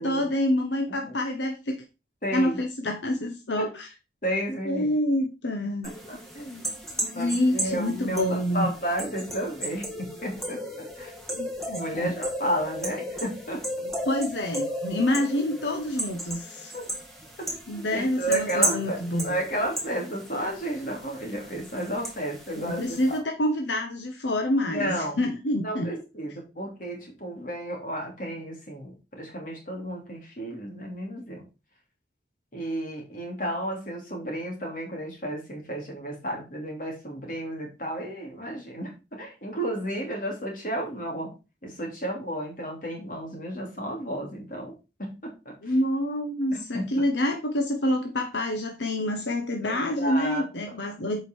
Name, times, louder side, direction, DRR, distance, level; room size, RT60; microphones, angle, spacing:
voice 1, 0.0-1.8 2.3-3.9 4.6-5.9 7.0-8.7 11.4-12.1 14.1-16.7 17.7-19.3 22.6-25.9 45.6-51.2, left 1 dB, 80° left, 3 dB, 1.1 m, -27 dB
voice 2, 2.2-2.6 3.6-3.7 4.2-4.9 6.1-6.7 7.1-11.1 11.7-13.6 16.7-16.8 17.4-17.5 17.9-19.0 19.2-23.2 24.6-25.2 25.5-31.5 32.5-41.3 41.6-45.8 46.5-46.8 49.7-50.9, right 1 dB, 45° left, 1 dB, 2.8 m, -32 dB
sound 1, 5.8-23.2, right 1 dB, ahead, 1.7 m, -35 dB
7.8 x 5.2 x 4.5 m, 0.29 s
head